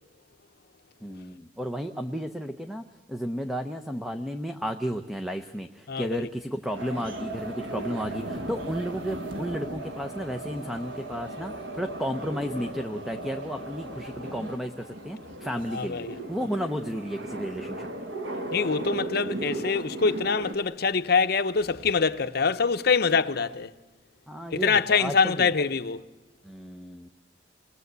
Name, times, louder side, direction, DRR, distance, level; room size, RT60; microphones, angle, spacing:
voice 1, 1.0-17.9 24.3-25.5 26.4-27.1, equal, ahead, 0.7 m, -33 dB
sound 1, 6.7-20.5, right 1 dB, 90° right, 1.7 m, -36 dB
voice 2, 15.7-16.1 18.5-23.7 24.5-26.0, left 5 dB, 60° left, 0.8 m, -24 dB
29.0 x 20.5 x 8.1 m
head